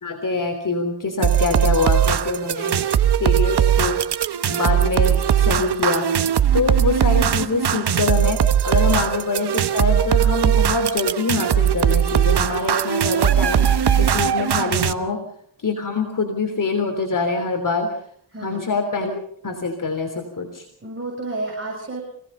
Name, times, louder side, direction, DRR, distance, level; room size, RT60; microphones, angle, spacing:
voice 1, 0.0-4.0 4.5-6.1 6.5-15.2 15.6-17.9 18.4-19.1 19.4-20.7, left 3 dB, 45° left, 4 dB, 3.3 m, -24 dB
sound 1, 1.2-14.9, right 9 dB, 60° right, 1.1 m, -19 dB
voice 2, 18.3-18.6 20.8-22.0, right 2 dB, 25° right, -1 dB, 7.6 m, -31 dB
26.0 x 18.0 x 5.6 m, 0.67 s
cardioid pair, 90°, 45 cm